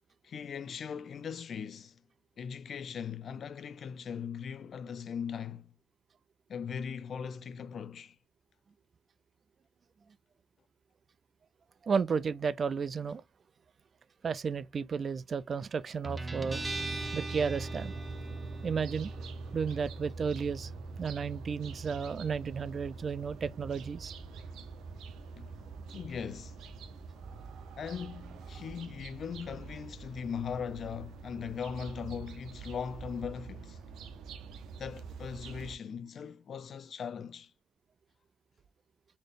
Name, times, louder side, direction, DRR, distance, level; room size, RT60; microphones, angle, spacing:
voice 1, 0.2-2.0 2.4-5.7 6.5-8.2 25.4-25.6 25.9-26.6 27.8-33.8 34.8-37.5, left 7 dB, 55° left, 0.4 m, -39 dB
voice 2, 11.8-13.2 14.2-16.6 17.1-18.0 18.6-19.2 19.5-20.7 21.0-24.1, right 6 dB, 45° right, 0.3 m, -33 dB
Guitar, 16.0-33.2, right 2 dB, 20° right, 0.8 m, -43 dB
sound 1, 16.5-35.7, right 6 dB, 80° right, 0.6 m, -47 dB
4.1 x 3.3 x 2.4 m
cardioid pair, 90°, 0 cm